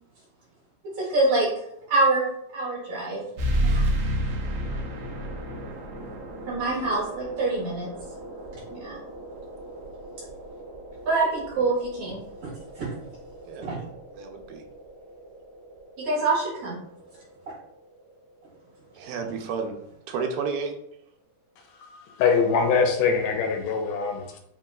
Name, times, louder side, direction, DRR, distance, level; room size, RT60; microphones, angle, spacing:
voice 1, 1.0-1.5 1.9-2.3 2.5-3.2 3.6-3.9 6.5-7.9 8.7-9.0 11.1-12.5 12.8-12.9 13.6-13.8 16.0-16.8, right 3 dB, 55° right, -7 dB, 2.7 m, -25 dB
sound 1, 3.4-18.5, right 1 dB, 70° right, 2.0 m, -33 dB
voice 2, 14.2-14.6 19.0-19.8 20.1-20.7, right 5 dB, 90° right, 4 dB, 2.4 m, -31 dB
voice 3, 21.7-24.4, left 5 dB, 80° left, 2 dB, 2.2 m, -23 dB
7.1 x 3.0 x 2.4 m, 0.77 s
omnidirectional pair, 4.0 m